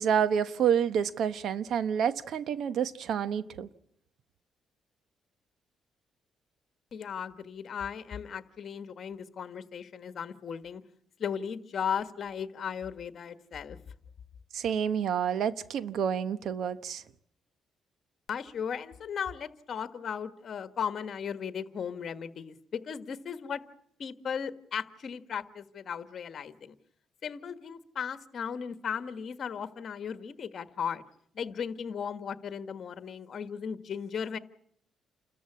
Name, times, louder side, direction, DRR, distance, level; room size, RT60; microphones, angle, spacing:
voice 1, 0.0-3.7 14.5-17.0, right 8 dB, 70° right, 1.0 m, -28 dB
voice 2, 6.9-10.8 11.2-13.8 18.3-23.6 24.0-26.7 27.2-31.0 31.3-34.4, left 7 dB, 55° left, 1.5 m, -36 dB
29.0 x 14.0 x 8.5 m
cardioid pair, 90°, 0 cm